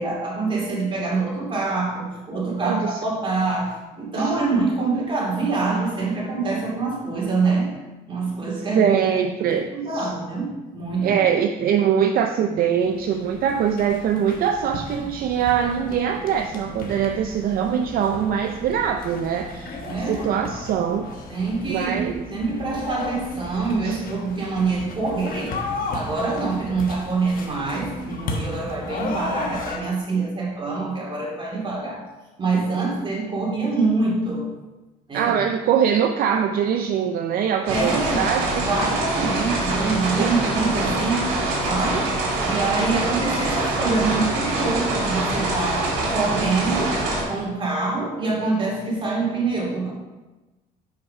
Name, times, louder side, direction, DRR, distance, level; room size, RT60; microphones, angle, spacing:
voice 1, 0.0-7.7 8.1-8.9 9.5-11.2 19.8-20.3 21.3-25.6 25.9-32.0 32.4-34.5 35.1-35.3 37.7-38.3 38.6-42.1 42.4-47.0 47.3-49.9, right 3 dB, 30° right, -4 dB, 2.5 m, -25 dB
voice 2, 2.6-3.0 4.1-4.3 8.8-10.1 11.0-21.1 21.7-22.1 23.8-24.0 35.1-38.7 40.2-40.3, right 8 dB, 60° right, 5 dB, 0.5 m, -23 dB
sound 1, 12.8-29.8, left 2 dB, 55° left, 1.2 m, -34 dB
sound 2, 37.7-47.2, right 2 dB, 90° right, 2.2 m, -24 dB
5.7 x 4.8 x 5.3 m, 1.2 s
cardioid pair, 110°, 17 cm